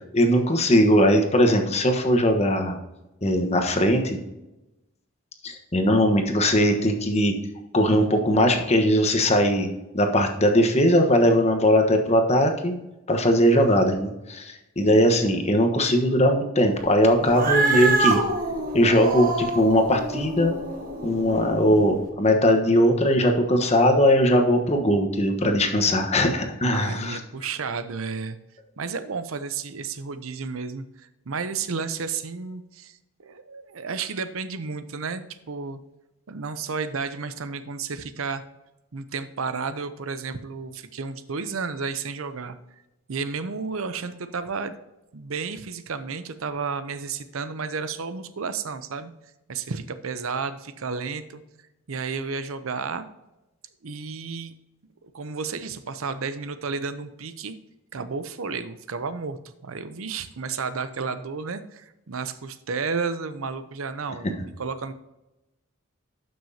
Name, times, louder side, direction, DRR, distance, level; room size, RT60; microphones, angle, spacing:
voice 1, 0.1-2.8 3.2-4.2 5.4-7.4 7.7-12.8 13.1-18.2 18.7-20.5 21.0-27.2, equal, 30° left, 4 dB, 1.2 m, -20 dB
Cat, 17.2-21.8, right 3 dB, 45° right, 1.6 m, -26 dB
voice 2, 26.7-28.4 28.8-35.8 36.3-38.4 38.9-42.6 43.1-44.7 45.1-49.1 49.5-51.4 51.9-53.0 53.8-54.5 55.0-57.5 57.9-64.9, right 5 dB, 85° right, 12 dB, 0.7 m, -32 dB
12.0 x 6.2 x 2.8 m, 0.96 s
head